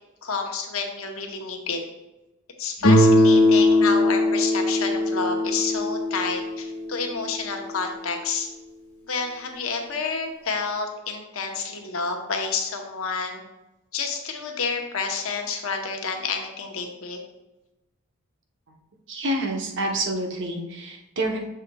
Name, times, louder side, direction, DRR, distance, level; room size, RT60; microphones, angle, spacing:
voice 1, 0.2-1.8 2.6-8.5 9.1-13.4 13.9-17.2, left 4 dB, 65° left, 3 dB, 0.9 m, -29 dB
Guitar, 2.8-7.6, left 1 dB, 90° left, 1.5 m, -20 dB
voice 2, 19.1-21.4, right 1 dB, 55° right, 2 dB, 1.0 m, -27 dB
6.8 x 6.7 x 2.3 m, 0.98 s
head